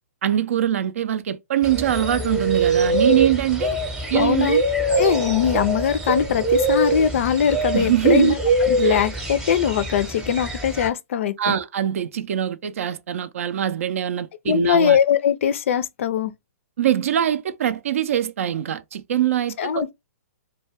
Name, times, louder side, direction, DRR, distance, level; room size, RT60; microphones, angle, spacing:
voice 1, 0.2-3.8 4.1-4.5 7.7-8.3 8.8-9.0 11.4-15.0 16.8-19.9, right 11 dB, 60° right, 0.4 m, -23 dB
sound 1, 1.6-10.9, right 2 dB, 5° right, 0.7 m, -23 dB
voice 2, 4.1-4.6 5.0-8.4 8.7-11.5 14.5-16.3 19.6-19.9, left 8 dB, 55° left, 0.4 m, -21 dB
2.2 x 2.1 x 3.3 m
hypercardioid pair, 125°, 8 cm